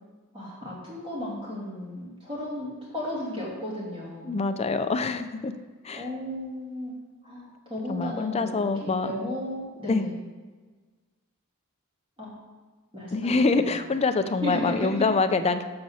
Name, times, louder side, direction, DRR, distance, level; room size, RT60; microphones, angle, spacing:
voice 1, 0.3-4.4 5.9-6.9 7.2-10.2 12.2-12.3 12.9-13.7 14.4-15.0, left 1 dB, 25° right, -6 dB, 2.9 m, -34 dB
voice 2, 4.2-5.5 5.8-6.1 7.9-9.1 9.9-10.0 13.1-15.6, left 3 dB, 30° left, 8 dB, 0.5 m, -25 dB
7.2 x 5.1 x 6.3 m, 1.4 s
head